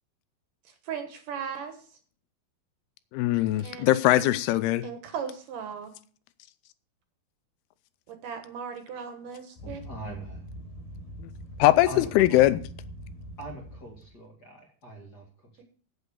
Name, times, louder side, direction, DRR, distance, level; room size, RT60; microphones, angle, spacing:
voice 1, 0.8-1.7 3.6-3.9 4.8-5.9 8.1-9.8, right 7 dB, 65° right, 7 dB, 2.6 m, -37 dB
voice 2, 3.1-4.8 11.6-12.6, left 15 dB, 85° left, 14 dB, 2.6 m, -21 dB
sound 1, 9.6-14.2, equal, 60° left, 2.8 m, -43 dB
voice 3, 9.6-10.4 11.9-12.5 13.4-15.6, equal, 35° left, 1 dB, 1.9 m, -42 dB
8.4 x 8.2 x 6.8 m, 0.43 s
omnidirectional pair, 4.6 m